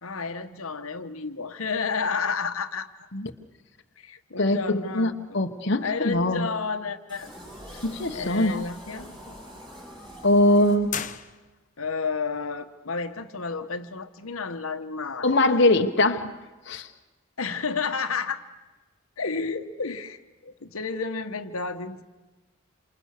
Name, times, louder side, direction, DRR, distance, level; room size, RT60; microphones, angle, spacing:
voice 1, 0.0-3.1 4.0-5.4 5.8-7.3 7.7-9.3 11.8-15.4 17.4-18.5 19.2-22.0, left 5 dB, 80° left, 8 dB, 1.3 m, -31 dB
voice 2, 4.4-6.5 7.8-8.6 10.2-11.0 15.2-16.3 16.7-16.9, left 1 dB, 55° left, 4 dB, 1.2 m, -22 dB
sound 1, 7.1-11.3, equal, 20° right, 6.1 m, -44 dB
sound 2, 10.9-11.9, left 8 dB, 35° left, 1.0 m, -35 dB
28.0 x 27.5 x 6.6 m, 1.2 s
head